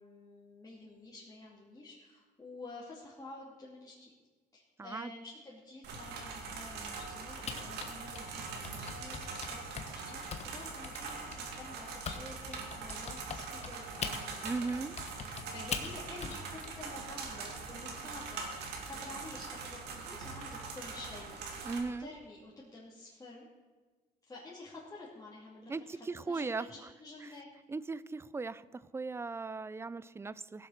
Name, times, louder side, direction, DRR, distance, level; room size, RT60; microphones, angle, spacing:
voice 1, 0.0-4.1 4.5-14.8 15.2-23.5 24.2-27.5, left 2 dB, 20° left, -7 dB, 2.7 m, -50 dB
voice 2, 4.8-5.1 14.4-15.0 21.6-22.1 25.7-26.7 27.7-30.7, right 4 dB, 15° right, 18 dB, 0.4 m, -38 dB
sound 1, 5.8-21.8, right 4 dB, 80° right, 2.3 m, -42 dB
Typing, 7.5-12.2 12.5-16.7, left 6 dB, 40° left, 1.3 m, -41 dB
16.5 x 7.5 x 6.5 m, 1.3 s
cardioid pair, 110°, 17 cm